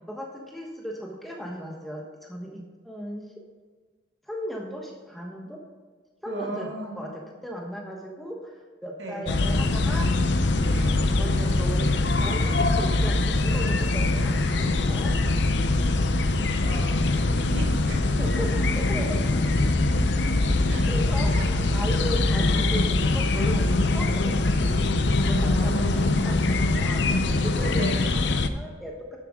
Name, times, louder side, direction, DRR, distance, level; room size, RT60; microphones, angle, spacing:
voice 1, 0.1-3.2 4.3-5.6 6.2-10.1 11.2-15.2 18.2-19.2 20.9-24.7 25.2-28.0 28.5-28.9, equal, ahead, -1 dB, 1.1 m, -36 dB
voice 2, 6.3-7.0 9.0-9.3 10.7-11.1 16.6-17.1 17.3-18.0 20.7-20.9 21.3-21.5 25.4-26.3 27.6-28.2, right 2 dB, 65° right, -1 dB, 2.1 m, -37 dB
sound 1, 9.3-28.5, left 2 dB, 60° left, 0.6 m, -23 dB
11.0 x 7.6 x 3.7 m, 1.4 s
head